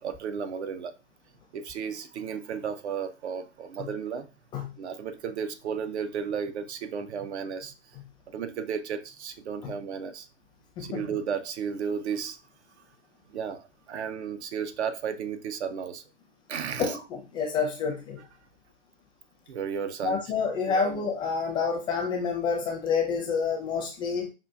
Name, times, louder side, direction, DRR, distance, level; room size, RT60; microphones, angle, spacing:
voice 1, 0.0-0.9 1.5-4.3 4.8-7.7 8.3-10.3 10.8-12.4 13.3-16.0 16.5-17.0 18.2-18.3 19.5-20.2 20.7-21.0, right 7 dB, 65° right, 0.7 m, -33 dB
voice 2, 10.8-11.1 16.8-17.0 17.3-18.2 20.0-24.3, left 5 dB, 15° left, 0.5 m, -28 dB
5.5 x 2.4 x 2.4 m
hypercardioid pair, 125°, 36 cm